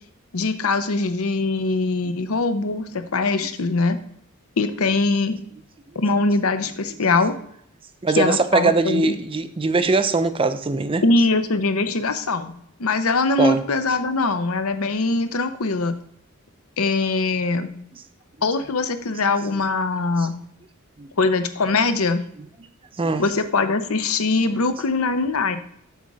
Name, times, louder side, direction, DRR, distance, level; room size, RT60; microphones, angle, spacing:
voice 1, 0.3-4.0 4.6-5.4 5.9-7.3 8.2-9.1 11.0-12.5 12.8-15.9 16.8-17.7 18.4-20.3 21.2-22.2 23.2-25.6, left 3 dB, 80° left, 0.8 m, -22 dB
voice 2, 8.0-11.0 13.4-13.6 21.0-21.1 23.0-23.2, right 3 dB, 25° right, 0.5 m, -21 dB
8.1 x 3.6 x 6.2 m
head